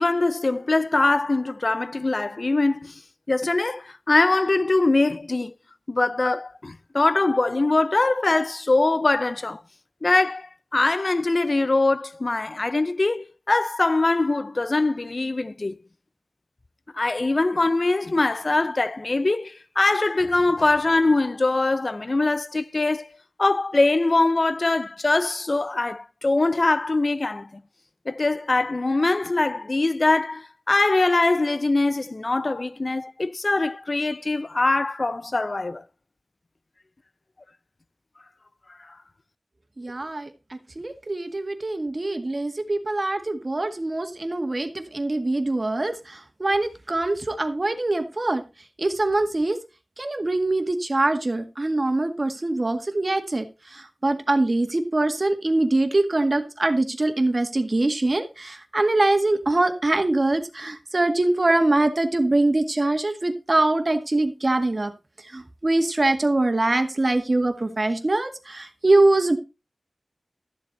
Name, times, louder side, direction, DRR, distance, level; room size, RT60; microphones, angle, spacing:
voice 1, 0.0-3.0 3.3-5.5 5.9-9.6 10.0-15.8 16.9-23.1 23.4-27.5 28.1-35.8, left 2 dB, 55° left, 0.5 m, -22 dB
voice 2, 39.8-48.4 48.8-49.6 50.0-53.5 53.7-64.9 65.3-69.4, right 2 dB, 50° right, 1.9 m, -23 dB
13.5 x 7.7 x 4.1 m
wide cardioid pair, 50°, 0 cm